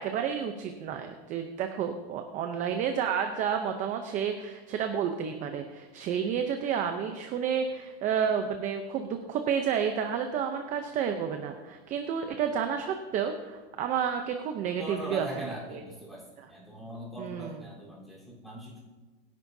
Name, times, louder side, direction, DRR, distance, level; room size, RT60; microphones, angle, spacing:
voice 1, 0.0-15.3 15.7-15.8 17.2-17.6, right 7 dB, 25° right, 6 dB, 0.7 m, -30 dB
voice 2, 14.8-16.2 16.5-18.8, right 1 dB, ahead, -6 dB, 3.9 m, -40 dB
24.5 x 11.0 x 2.8 m, 1.3 s
supercardioid pair, 160°, 31 cm